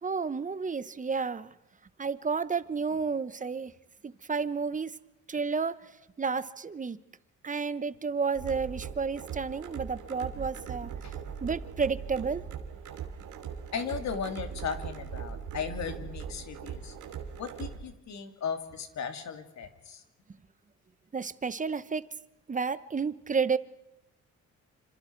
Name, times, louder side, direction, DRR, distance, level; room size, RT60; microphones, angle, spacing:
voice 1, 0.0-1.5 2.0-3.7 4.0-4.9 5.3-5.9 6.2-7.0 7.4-10.9 11.4-12.4 21.1-22.1 22.5-23.6, right 5 dB, 25° right, 15 dB, 1.1 m, -31 dB
sound 1, 8.3-17.8, right 7 dB, 85° right, 2.7 m, -40 dB
voice 2, 13.7-16.9 17.4-20.0, left 6 dB, 65° left, 6 dB, 2.9 m, -36 dB
27.5 x 26.5 x 4.7 m, 0.90 s
cardioid pair, 90°, 30 cm